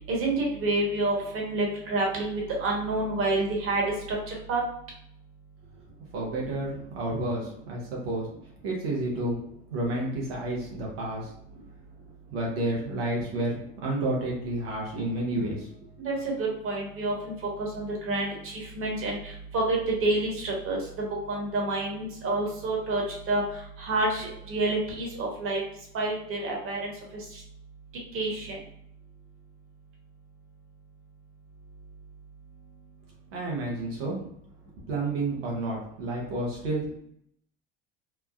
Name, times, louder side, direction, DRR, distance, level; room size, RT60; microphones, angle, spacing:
voice 1, 0.1-4.6 16.0-17.3 17.6-19.2 19.5-23.0 23.3-23.4 23.8-25.6 25.9-26.9 28.1-28.6, right 2 dB, 50° right, -1 dB, 1.1 m, -28 dB
voice 2, 6.1-8.3 8.6-9.4 9.7-11.3 12.3-15.7 33.3-34.2 34.9-36.9, right 2 dB, 90° right, -3 dB, 0.8 m, -30 dB
3.0 x 2.2 x 2.4 m, 0.71 s
hypercardioid pair, 80°, 29 cm